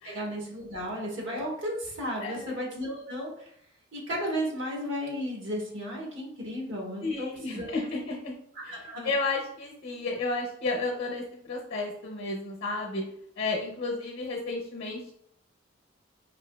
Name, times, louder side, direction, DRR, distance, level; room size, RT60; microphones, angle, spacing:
voice 1, 0.0-3.5 3.9-7.7 8.7-9.1, equal, 70° right, -2 dB, 1.2 m, -34 dB
voice 2, 2.2-2.5 7.0-8.4 8.6-13.0 13.4-15.1, left 3 dB, 55° left, -1 dB, 0.7 m, -32 dB
4.4 x 2.7 x 2.2 m, 0.69 s
head